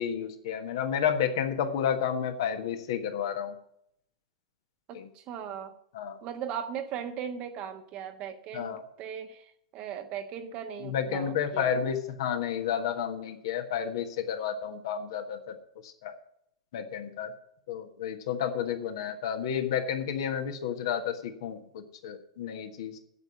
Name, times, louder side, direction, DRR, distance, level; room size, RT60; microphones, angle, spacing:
voice 1, 0.0-3.5 4.9-5.1 5.9-6.2 8.5-8.8 10.8-15.6 15.8-16.1 16.7-17.3 17.7-23.0, left 8 dB, 55° left, 5 dB, 1.5 m, -31 dB
voice 2, 4.9-5.7 6.2-11.8, right 8 dB, 40° right, 7 dB, 1.3 m, -38 dB
8.4 x 7.9 x 9.1 m, 0.72 s
figure-of-eight pair, 95°, 3 cm